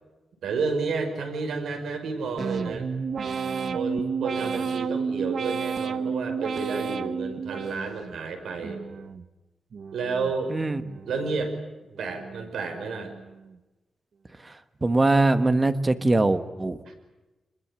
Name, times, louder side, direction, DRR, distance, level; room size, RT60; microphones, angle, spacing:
voice 1, 0.4-2.9 3.7-8.8 9.9-10.6 11.1-11.5 12.0-13.1 16.9-17.0, right 4 dB, 80° right, 5 dB, 5.6 m, -31 dB
sound 1, 2.4-8.2 8.6-9.3 9.7-10.4 10.8-11.5 11.9-12.5 13.0-13.5, right 5 dB, 50° right, 1.1 m, -31 dB
voice 2, 10.5-10.8 14.4-14.5 14.8-16.9, right 2 dB, 20° right, 10 dB, 1.4 m, -22 dB
26.0 x 21.5 x 8.8 m, 1.1 s
wide cardioid pair, 155°, 0 cm